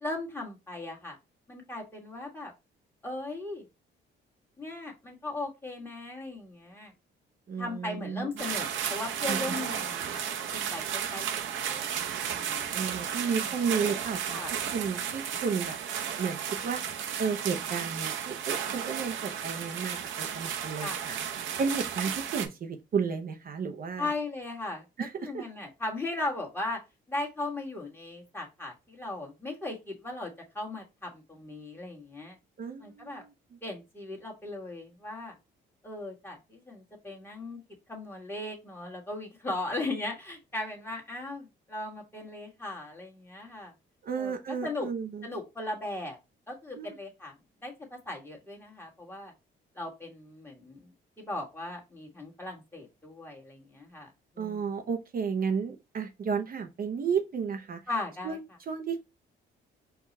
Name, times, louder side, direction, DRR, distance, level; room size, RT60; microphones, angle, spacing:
voice 1, 0.0-1.2 1.5-2.5 3.0-3.6 4.6-6.9 7.6-10.2 10.5-11.9 12.2-12.7 13.3-13.6 14.3-14.5 20.8-21.0 24.0-24.8 25.2-26.8 27.1-30.3 30.5-32.4 32.8-33.2 33.6-35.3 35.8-37.6 37.9-43.7 44.1-44.9 45.2-46.2 46.5-47.3 47.6-49.3 49.7-50.9 51.2-54.1 54.3-54.7 57.9-58.4, left 2 dB, 10° left, 1.5 m, -38 dB
voice 2, 7.5-8.3 9.3-9.4 12.7-14.4 14.7-15.8 16.2-16.8 17.2-21.3 21.6-24.1 25.0-25.4 32.6-33.3 44.0-45.3 46.8-47.0 54.4-57.8 58.2-58.4 58.7-59.0, right 6 dB, 45° right, 0.6 m, -32 dB
sound 1, 8.4-22.5, right 8 dB, 80° right, 0.8 m, -33 dB
4.6 x 2.3 x 4.1 m
cardioid pair, 90°, 20 cm